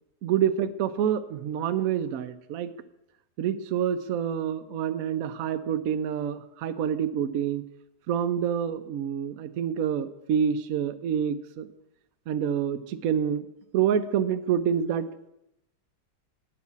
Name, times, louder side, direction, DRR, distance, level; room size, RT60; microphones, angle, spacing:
voice 1, 0.2-2.7 3.4-7.6 8.1-11.7 12.3-13.5 13.7-15.1, right 8 dB, 65° right, 9 dB, 0.9 m, -27 dB
9.8 x 5.9 x 8.3 m, 0.84 s
omnidirectional pair, 1.9 m